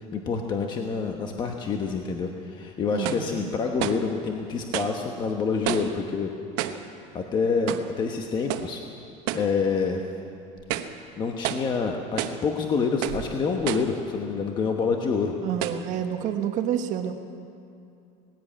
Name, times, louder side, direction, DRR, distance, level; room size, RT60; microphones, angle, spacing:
voice 1, 0.1-6.3 7.1-8.8 9.3-10.0 11.2-15.3, left 5 dB, 25° left, 3 dB, 1.1 m, -27 dB
voice 2, 2.9-3.5 15.4-17.1, right 9 dB, 45° right, 6 dB, 1.3 m, -29 dB
sound 1, 3.0-3.3 3.8-4.1 4.7-5.0 5.7-6.0 6.6-6.9 7.7-8.0 8.5-8.8 9.3-9.5 10.0-10.1 10.6-11.0 11.4-11.7 12.2-12.5 13.0-13.3 13.7-14.0 14.7-14.8 15.6-15.9, right 12 dB, 70° right, 1.1 m, -30 dB
19.5 x 16.0 x 8.6 m, 2.6 s
cardioid pair, 160°, 17 cm